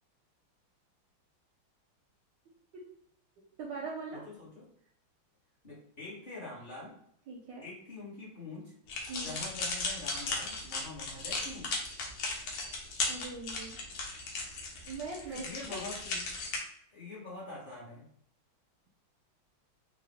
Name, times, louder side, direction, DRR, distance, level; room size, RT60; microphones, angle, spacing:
voice 1, 3.6-4.3 7.3-7.7 9.1-9.3 13.1-13.8 14.9-15.4 15.7-15.8, right 4 dB, 75° right, 0 dB, 1.1 m, -41 dB
voice 2, 4.1-4.6 5.6-7.0 7.6-8.7 9.2-11.8 15.3-16.2 16.9-18.1, left 2 dB, 30° left, -7 dB, 1.0 m, -45 dB
sound 1, 8.9-16.6, left 3 dB, 75° left, 1.5 m, -36 dB
3.8 x 2.3 x 3.3 m, 0.69 s
omnidirectional pair, 2.3 m